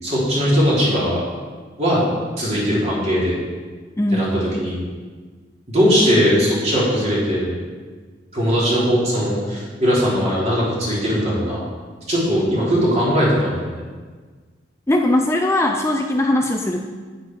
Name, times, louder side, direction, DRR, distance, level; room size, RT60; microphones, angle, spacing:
voice 1, 0.0-1.2 1.8-2.0 2.4-3.3 4.1-4.8 5.7-7.5 8.3-11.6 12.1-13.8, equal, 40° right, -6 dB, 3.6 m, -19 dB
voice 2, 4.0-4.3 14.9-16.8, left 1 dB, 15° left, 2 dB, 0.5 m, -19 dB
9.6 x 9.5 x 4.6 m, 1.5 s
head